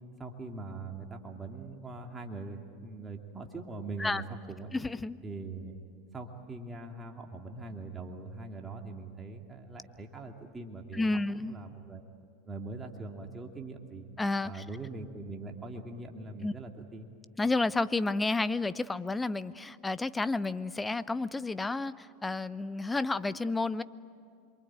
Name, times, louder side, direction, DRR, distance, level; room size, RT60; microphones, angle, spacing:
voice 1, 0.2-4.2 4.5-4.7 5.2-5.7 6.1-11.1 11.3-12.0 12.5-14.1 14.4-17.1, right 3 dB, 20° right, 1 dB, 2.7 m, -42 dB
voice 2, 4.7-5.2 10.9-11.5 14.2-14.6 16.4-16.5 17.4-23.8, left 3 dB, 10° left, 16 dB, 0.8 m, -31 dB
27.0 x 23.5 x 9.0 m, 2.3 s
hypercardioid pair, 95°, 0 cm